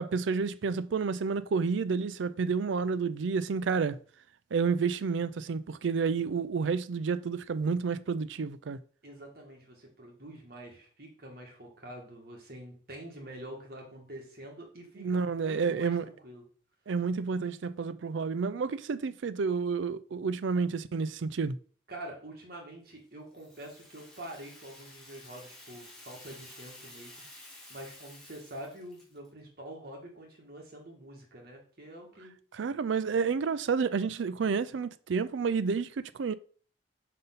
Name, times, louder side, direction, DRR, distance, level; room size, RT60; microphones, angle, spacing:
voice 1, 0.0-4.0 4.5-8.8 15.0-16.1 16.9-21.6 32.5-36.3, right 5 dB, 80° right, 0.4 m, -30 dB
voice 2, 9.0-16.4 21.9-27.2 27.7-32.3, right 1 dB, 55° right, 2.0 m, -46 dB
Rattle (instrument), 23.3-29.3, left 1 dB, 5° left, 1.7 m, -52 dB
5.5 x 5.4 x 4.0 m
head